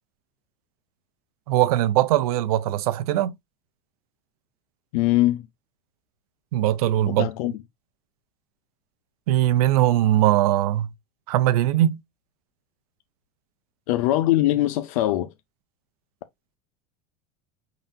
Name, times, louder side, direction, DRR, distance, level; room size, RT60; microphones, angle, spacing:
voice 1, 1.5-3.3 6.5-7.3 9.3-10.9 11.3-12.0, right 13 dB, 85° right, 0.6 m, -20 dB
voice 2, 4.9-5.5 7.1-7.5 13.9-15.3, left 15 dB, 70° left, 0.5 m, -22 dB
5.4 x 3.9 x 2.4 m
supercardioid pair, 165°, 19 cm